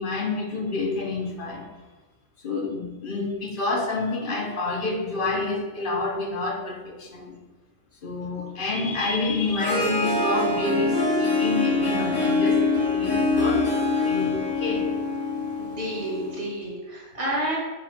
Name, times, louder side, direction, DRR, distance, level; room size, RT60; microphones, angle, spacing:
voice 1, 0.0-1.7 2.4-7.4 8.0-13.7 14.0-14.9, left 3 dB, 45° left, 1 dB, 1.0 m, -28 dB
Harp, 9.4-16.5, left 3 dB, 70° left, 1.7 m, -24 dB
voice 2, 15.6-17.6, right 1 dB, 55° right, -6 dB, 2.4 m, -30 dB
7.6 x 2.6 x 5.0 m, 1.2 s
omnidirectional pair, 1.3 m